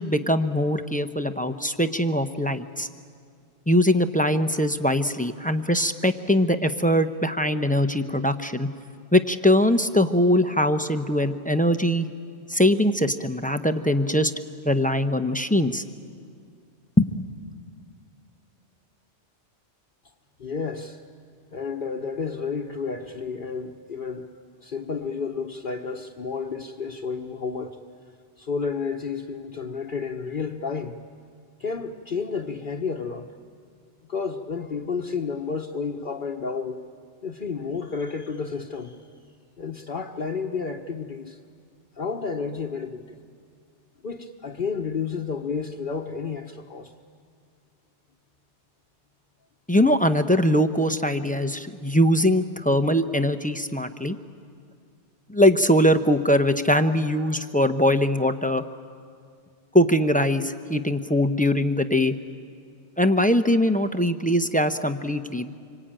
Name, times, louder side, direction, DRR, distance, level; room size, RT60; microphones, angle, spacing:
voice 1, 0.0-2.9 3.7-8.7 9.1-12.1 12.5-14.3 14.6-15.8 17.0-17.2 49.7-54.2 55.3-58.6 59.7-62.2 63.0-65.5, left 1 dB, 10° left, 8 dB, 0.7 m, -22 dB
voice 2, 20.4-21.0 21.5-24.3 24.6-27.8 28.4-31.0 31.6-33.3 34.1-36.9 37.2-39.0 39.6-41.4 42.0-43.2 44.0-46.9, left 5 dB, 50° left, 1 dB, 1.1 m, -31 dB
26.0 x 24.5 x 8.9 m, 2.2 s
omnidirectional pair, 1.2 m